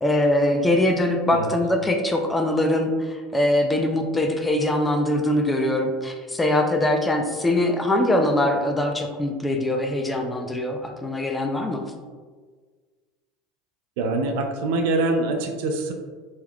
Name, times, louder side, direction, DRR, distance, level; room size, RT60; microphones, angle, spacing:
voice 1, 0.0-11.8, left 1 dB, 10° left, 3 dB, 0.3 m, -22 dB
voice 2, 14.0-15.9, right 2 dB, 70° right, 3 dB, 0.5 m, -24 dB
3.6 x 3.0 x 2.3 m, 1.5 s
supercardioid pair, 130°, 0 cm